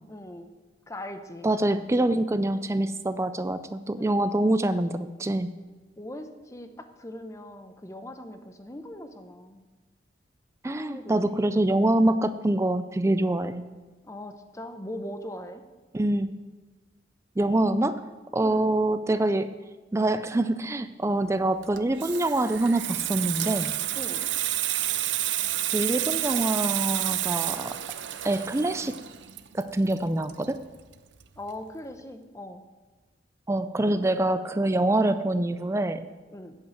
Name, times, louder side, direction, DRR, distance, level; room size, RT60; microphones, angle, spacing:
voice 1, 0.1-0.5 0.9-1.5 4.0-4.3 6.0-9.7 10.6-11.8 14.0-15.6 18.4-18.7 23.9-24.3 31.4-32.6 36.3-36.6, left 1 dB, 15° left, 8 dB, 0.7 m, -40 dB
voice 2, 1.4-5.5 10.6-13.7 15.9-16.4 17.4-18.1 18.3-19.6 19.9-23.8 25.7-27.8 28.2-29.0 29.5-30.6 33.5-36.1, right 1 dB, 15° right, 11 dB, 0.4 m, -25 dB
Water tap faucet / Sink (filling or washing), 21.6-30.9 31.2-31.5, right 13 dB, 70° right, 0.5 m, -30 dB
8.4 x 8.2 x 7.9 m, 1.2 s
head